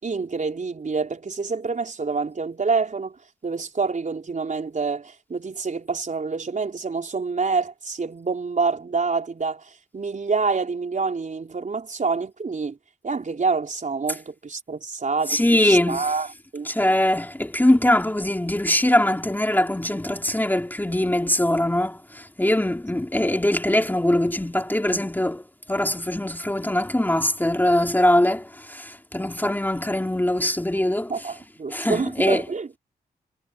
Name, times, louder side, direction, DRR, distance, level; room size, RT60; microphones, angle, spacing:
voice 1, 0.0-3.2 3.4-12.8 13.0-16.7 31.1-32.7, right 4 dB, 50° right, 4.3 m, -27 dB
voice 2, 15.3-16.1 16.6-31.3 31.7-32.4, left 1 dB, 10° left, 2.6 m, -22 dB
cardioid pair, 65°, 17 cm